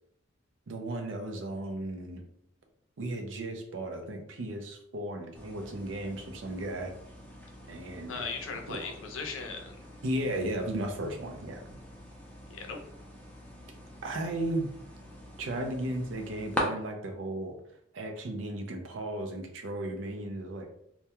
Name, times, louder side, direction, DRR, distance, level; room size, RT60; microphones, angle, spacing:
voice 1, 0.7-2.2 3.0-6.9 7.7-8.3 8.7-8.9 10.0-11.6 14.0-14.7 15.4-17.6 17.9-20.7, right 1 dB, 70° right, 3 dB, 0.4 m, -35 dB
sound 1, 5.3-16.6, left 1 dB, 5° left, 0.4 m, -44 dB
voice 2, 8.1-9.8 12.5-12.8, left 4 dB, 85° left, 3 dB, 0.5 m, -38 dB
2.2 x 2.1 x 2.8 m, 0.74 s
head